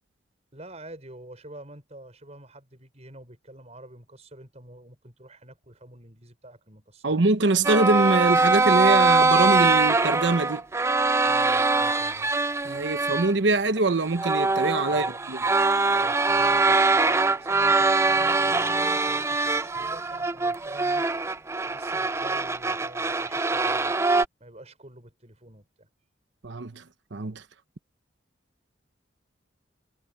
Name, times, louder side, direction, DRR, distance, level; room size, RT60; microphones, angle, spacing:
voice 1, 0.5-7.3 11.2-12.3 14.9-15.2 15.9-21.3 21.6-24.0 24.4-25.9, right 1 dB, 35° right, 5.9 m, -47 dB
voice 2, 7.0-10.6 12.6-15.4 26.4-26.8 27.1-27.4, right 3 dB, 70° right, 1.0 m, -24 dB
sound 1, 7.6-13.3 13.8-13.9 14.1-24.2, right 3 dB, 15° right, 0.5 m, -23 dB
sound 2, 17.8-23.3, equal, 35° left, 3.6 m, -56 dB
head